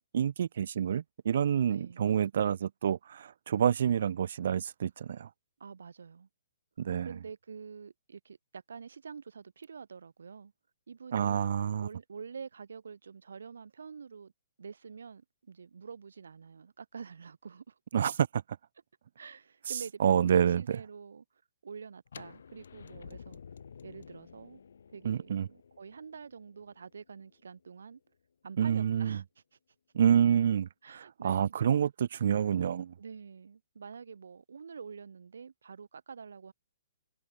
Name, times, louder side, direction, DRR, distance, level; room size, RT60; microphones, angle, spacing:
voice 1, 0.1-5.3 6.8-7.1 11.1-11.9 17.9-18.4 20.0-20.8 25.0-25.5 28.6-29.2 29.9-32.9, right 8 dB, 50° right, 0.8 m, -28 dB
voice 2, 1.7-2.0 5.6-6.3 7.0-10.5 10.9-11.5 11.8-14.3 14.6-17.8 19.2-21.2 21.6-23.4 23.8-24.6 24.9-28.0 28.4-29.2 30.8-31.5 33.0-36.5, right 6 dB, 85° right, 3.3 m, -47 dB
sound 1, 22.1-27.9, left 6 dB, 70° left, 2.7 m, -52 dB
hypercardioid pair, 170°, 0 cm